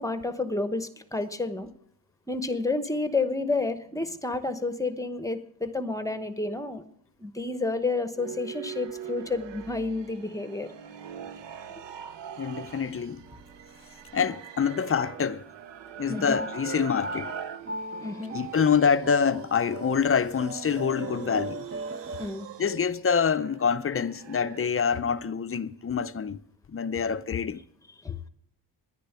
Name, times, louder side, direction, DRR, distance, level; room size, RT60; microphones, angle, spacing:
voice 1, 0.0-1.7 2.3-6.8 7.2-10.7 16.1-16.4 18.0-18.4 22.2-22.5 28.0-28.2, left 3 dB, 10° left, 1.0 m, -30 dB
sound 1, 8.2-24.7, right 9 dB, 85° right, 0.9 m, -43 dB
voice 2, 12.4-13.2 14.1-15.4 16.0-17.3 18.3-21.7 22.6-26.4 26.7-27.6, left 6 dB, 35° left, 0.5 m, -26 dB
sound 2, 13.3-14.0 14.7-15.3 16.3-22.3, right 2 dB, 35° right, 0.9 m, -39 dB
10.5 x 10.0 x 8.0 m
wide cardioid pair, 125°, 42 cm